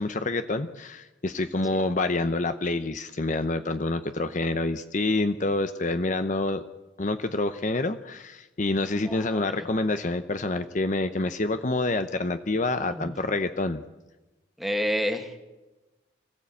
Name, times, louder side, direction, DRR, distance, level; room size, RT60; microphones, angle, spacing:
voice 1, 0.0-6.6 7.0-13.8, left 2 dB, 40° left, 10 dB, 0.7 m, -27 dB
voice 2, 8.8-9.7 12.8-13.1 14.6-15.4, equal, ahead, 5 dB, 1.8 m, -31 dB
25.0 x 15.0 x 8.5 m, 1.1 s
head